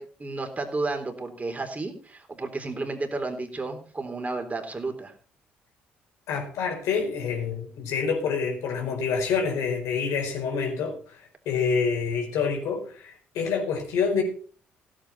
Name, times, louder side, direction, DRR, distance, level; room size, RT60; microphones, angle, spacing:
voice 1, 0.0-5.1, right 3 dB, 25° right, 5 dB, 3.8 m, -32 dB
voice 2, 6.3-14.2, left 5 dB, 70° left, 2 dB, 4.9 m, -27 dB
16.5 x 9.0 x 4.3 m, 0.42 s
hypercardioid pair, 50°, 5 cm